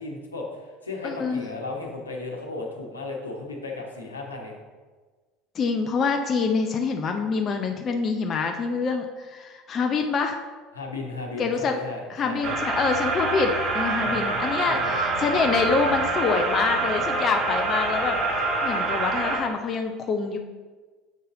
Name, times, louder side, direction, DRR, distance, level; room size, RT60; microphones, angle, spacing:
voice 1, 0.0-4.5 10.7-12.6 14.0-15.0 16.8-17.5, left 3 dB, 85° left, -1 dB, 1.1 m, -35 dB
voice 2, 1.0-1.4 5.5-10.4 11.4-11.7 12.1-18.2 18.6-20.4, left 4 dB, 35° left, 4 dB, 0.6 m, -26 dB
sound 1, 12.4-19.4, right 3 dB, 35° right, 1.3 m, -26 dB
7.4 x 5.5 x 3.8 m, 1.4 s
figure-of-eight pair, 70°, 0 cm